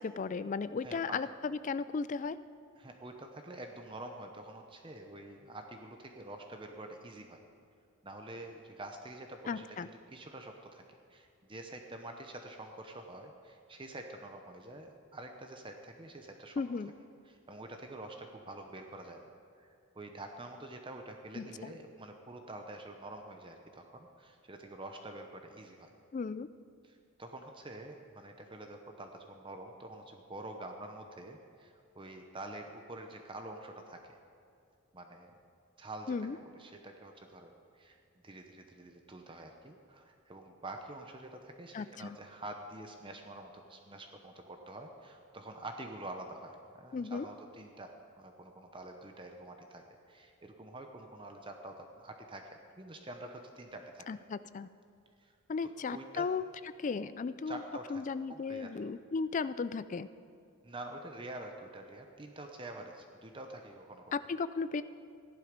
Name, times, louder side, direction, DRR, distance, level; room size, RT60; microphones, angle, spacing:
voice 1, 0.0-2.4 9.5-9.9 16.6-16.9 21.4-21.7 26.1-26.5 36.1-36.4 41.7-42.2 46.9-47.3 54.1-54.7 55.5-56.4 56.8-57.6 57.9-60.1 64.1-64.8, left 5 dB, 35° left, 14 dB, 0.3 m, -35 dB
voice 2, 0.8-1.2 2.8-7.4 8.0-16.6 17.3-19.3 19.6-25.9 26.8-34.0 34.9-35.3 35.8-36.2 36.4-38.0 38.2-52.5 52.8-54.1 55.2-55.3 55.6-56.3 57.5-58.0 58.3-58.7 60.6-64.1, right 2 dB, 25° right, 4 dB, 0.7 m, -47 dB
15.0 x 11.0 x 5.2 m, 2.4 s
head